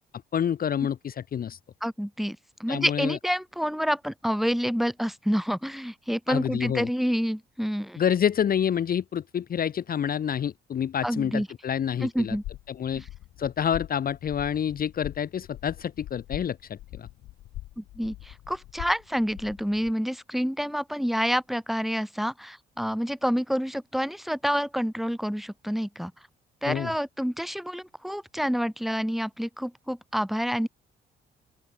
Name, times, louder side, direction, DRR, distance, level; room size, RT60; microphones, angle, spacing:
voice 1, 0.3-1.6 2.7-3.2 6.3-6.9 8.0-12.4 12.7-13.0 13.4-17.1 26.7-26.9, left 8 dB, 50° left, 0.9 m, -28 dB
voice 2, 1.8-8.0 11.0-11.5 12.0-12.4 12.9-13.1 17.8-26.1 26.6-30.7, equal, ahead, 2.1 m, -28 dB
sound 1, 12.2-19.9, left 15 dB, 85° left, 1.2 m, -43 dB
open air
cardioid pair, 90°, 20 cm